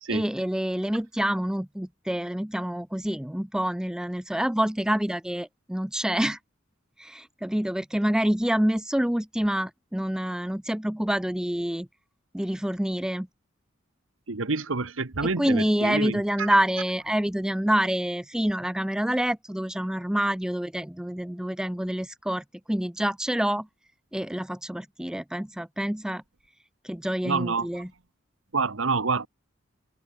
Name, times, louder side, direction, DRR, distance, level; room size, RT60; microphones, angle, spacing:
voice 1, 0.1-6.4 7.0-11.9 12.3-13.3 15.2-23.7 24.1-26.2 26.8-27.9, equal, 5° right, 0.4 m, -27 dB
voice 2, 14.3-16.5 27.2-27.8 28.5-29.3, right 4 dB, 75° right, 1.3 m, -28 dB
head